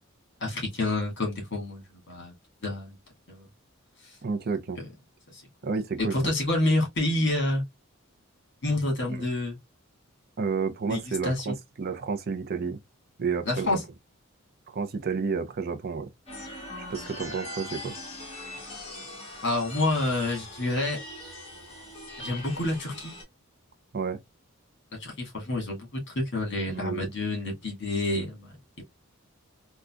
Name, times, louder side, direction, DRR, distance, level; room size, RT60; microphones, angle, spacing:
voice 1, 0.4-2.3 2.6-3.0 3.3-3.5 4.8-4.9 5.3-5.4 6.0-7.6 8.6-9.6 10.9-11.6 13.5-13.8 19.4-21.0 22.2-23.1 25.0-28.8, left 2 dB, 55° left, 1.7 m, -28 dB
voice 2, 4.2-4.8 5.6-6.3 9.1-9.2 10.4-12.8 13.2-13.8 14.7-16.1 16.8-17.9 23.9-24.2 26.7-27.1, right 5 dB, 45° right, 0.5 m, -31 dB
sound 1, 16.3-23.2, left 1 dB, 30° left, 1.4 m, -41 dB
3.7 x 2.3 x 2.3 m
head